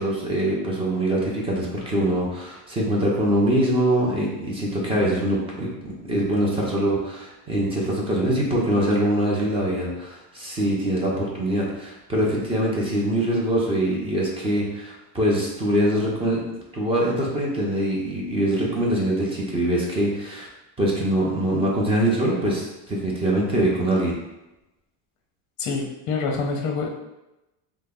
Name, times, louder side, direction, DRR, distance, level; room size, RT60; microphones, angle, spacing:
voice 1, 0.0-16.4 16.7-20.5 20.8-24.1, right 1 dB, 15° right, -4 dB, 0.4 m, -23 dB
voice 2, 25.6-26.9, left 4 dB, 40° left, 2 dB, 0.6 m, -26 dB
3.2 x 2.0 x 3.5 m, 0.96 s
supercardioid pair, 145°, 46 cm